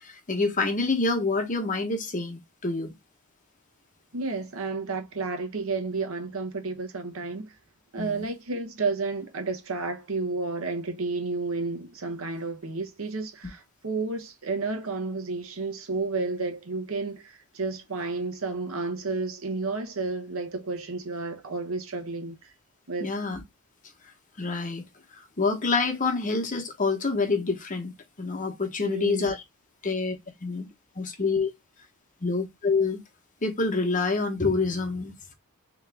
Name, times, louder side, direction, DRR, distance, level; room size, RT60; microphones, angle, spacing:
voice 1, 0.0-2.9 8.0-8.3 23.0-23.4 24.4-24.9 25.4-27.9 28.2-29.4 29.8-30.2 30.4-30.7 31.0-31.5 32.2-33.0 33.4-35.3, left 3 dB, 35° left, 0.9 m, -27 dB
voice 2, 4.1-7.5 7.9-22.5 22.9-23.1 28.8-29.4, right 3 dB, 65° right, 0.9 m, -31 dB
3.6 x 3.0 x 3.4 m
head